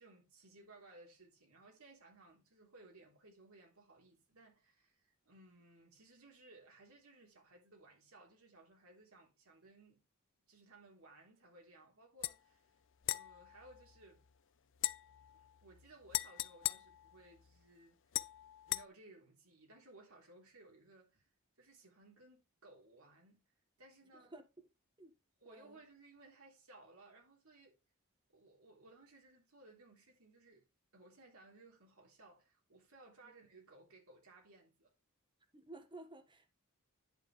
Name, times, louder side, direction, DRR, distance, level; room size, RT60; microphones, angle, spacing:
voice 1, 0.0-10.0 10.5-12.7 13.1-14.2 15.3-18.3 18.7-21.3 21.6-23.4 23.8-24.4 25.4-27.8 28.3-30.7 30.9-34.9, right 2 dB, 75° right, 3.6 m, -61 dB
sound 1, 12.2-12.4 13.0-14.3 14.8-17.6 18.1-18.9, left 16 dB, 60° left, 0.5 m, -41 dB
voice 2, 25.4-25.8 33.2-33.3 35.5-36.5, right 2 dB, 20° right, 1.5 m, -54 dB
10.5 x 7.5 x 3.3 m
head